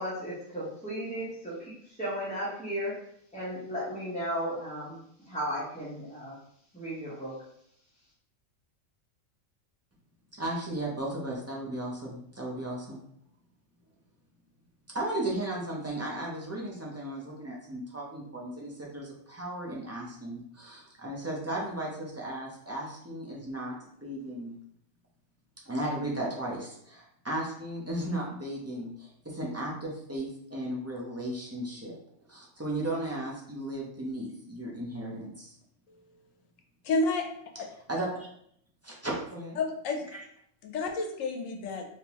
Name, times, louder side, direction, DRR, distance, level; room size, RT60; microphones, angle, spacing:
voice 1, 0.0-2.9 3.3-6.4 6.7-7.3, equal, 5° left, -10 dB, 0.9 m, -35 dB
voice 2, 10.4-13.0 14.9-24.5 25.7-32.0 32.3-35.5 37.9-38.3 38.8-39.6 40.1-40.2, right 1 dB, 20° right, -3 dB, 0.5 m, -35 dB
voice 3, 36.8-37.3 37.6-37.7 39.6-40.0 40.7-41.9, left 3 dB, 80° left, 4 dB, 1.0 m, -30 dB
3.6 x 2.7 x 3.0 m, 0.69 s
omnidirectional pair, 1.3 m